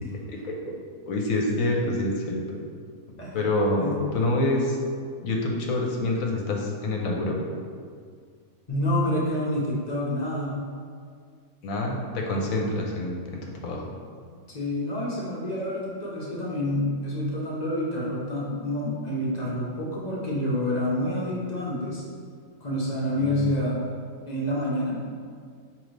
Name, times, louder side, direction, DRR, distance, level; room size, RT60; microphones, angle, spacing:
voice 1, 0.3-0.8 1.1-2.6 3.3-4.8 5.2-7.4 11.6-13.8 23.2-23.5, left 2 dB, 70° left, 0 dB, 1.0 m, -27 dB
voice 2, 3.2-3.5 3.8-4.0 8.7-10.6 14.5-22.0 22.6-23.8 24.3-25.0, left 1 dB, 40° left, -6 dB, 0.7 m, -28 dB
5.0 x 3.0 x 3.2 m, 2.1 s
omnidirectional pair, 1.5 m